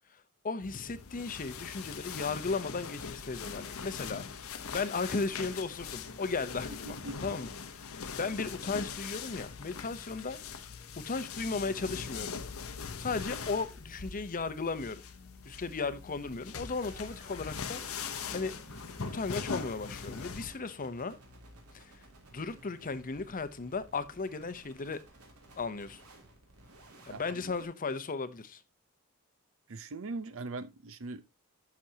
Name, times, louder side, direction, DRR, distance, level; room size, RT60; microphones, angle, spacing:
voice 1, 0.4-7.5 7.8-10.5 11.0-12.4 13.0-15.0 15.5-18.0 18.3-18.5 18.8-21.2 21.7-21.9 22.3-25.0 25.6-26.0 27.0-28.6, left 4 dB, 40° left, 0.8 m, -36 dB
sound 1, 0.6-20.5, left 5 dB, 70° left, 0.9 m, -41 dB
voice 2, 6.9-7.2 27.1-27.5 29.7-31.3, right 3 dB, 65° right, 0.7 m, -41 dB
sound 2, 9.5-20.2, left 2 dB, 50° right, 4.3 m, -59 dB
sound 3, 16.8-27.7, right 1 dB, 85° right, 3.0 m, -56 dB
11.5 x 6.2 x 2.8 m
head